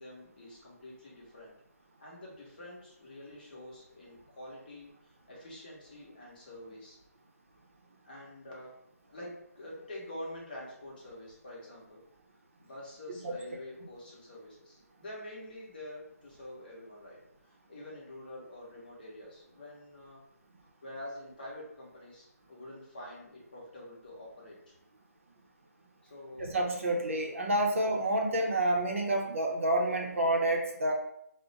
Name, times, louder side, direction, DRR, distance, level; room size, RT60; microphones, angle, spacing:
voice 1, 0.0-1.5 2.0-7.0 8.0-8.8 9.1-12.0 12.6-20.2 20.8-24.7 26.0-26.5, left 1 dB, 35° left, -4 dB, 0.9 m, -47 dB
voice 2, 26.4-30.9, right 1 dB, 50° right, 0 dB, 0.6 m, -29 dB
2.4 x 2.1 x 3.8 m, 0.76 s
hypercardioid pair, 170°, 9 cm